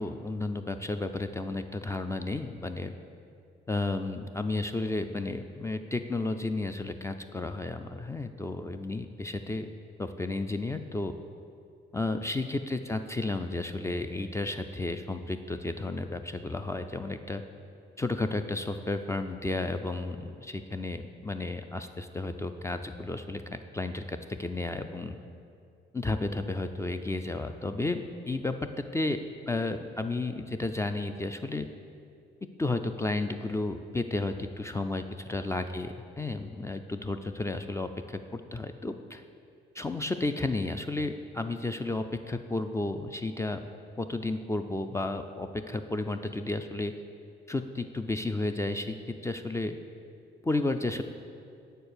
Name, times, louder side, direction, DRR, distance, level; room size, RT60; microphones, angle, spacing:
voice 1, 0.0-2.9 3.7-9.7 10.0-11.1 11.9-17.4 18.0-23.4 23.7-25.2 25.9-31.6 32.6-39.2 39.7-43.6 44.0-46.9 47.5-48.9 49.2-49.8 50.4-51.0, left 2 dB, 15° left, 8 dB, 0.3 m, -32 dB
6.9 x 4.5 x 6.6 m, 2.5 s
cardioid pair, 90°, 20 cm